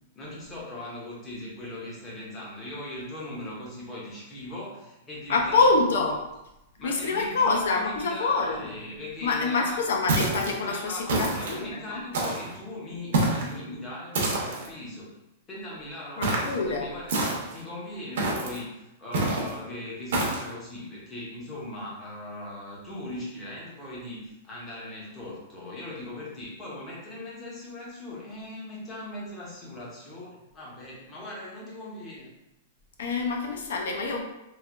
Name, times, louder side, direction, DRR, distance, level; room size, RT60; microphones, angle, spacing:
voice 1, 0.2-5.7 6.0-6.1 6.8-10.1 10.7-15.1 15.5-32.3, left 1 dB, 15° left, -5 dB, 0.7 m, -39 dB
voice 2, 5.3-6.2 6.8-8.7 9.2-12.1 16.2-16.9 33.0-34.2, left 3 dB, 75° left, 2 dB, 0.6 m, -26 dB
sound 1, 10.1-10.6 11.1-11.6 12.1-12.5 13.1-13.5 14.1-14.7 16.2-16.6 17.1-17.6 18.2-18.6 19.1-19.5 20.1-20.5, right 2 dB, 60° right, 0.7 m, -27 dB
3.2 x 2.5 x 2.4 m, 0.91 s
supercardioid pair, 180°, 0 cm